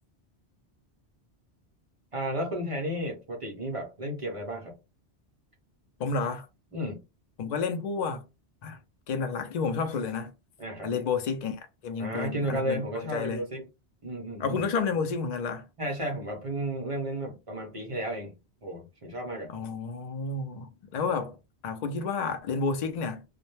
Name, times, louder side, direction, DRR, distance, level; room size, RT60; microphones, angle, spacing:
voice 1, 2.1-4.8 6.7-7.0 10.6-10.9 12.0-13.7 14.0-14.6 15.8-18.3 18.6-19.5, right 1 dB, 40° right, 0.5 m, -33 dB
voice 2, 6.0-6.5 7.4-8.2 8.6-8.8 9.1-10.3 10.8-13.4 14.4-15.6 19.5-21.4 21.6-23.2, left 5 dB, 55° left, 0.5 m, -30 dB
2.1 x 2.1 x 2.9 m
omnidirectional pair, 1.1 m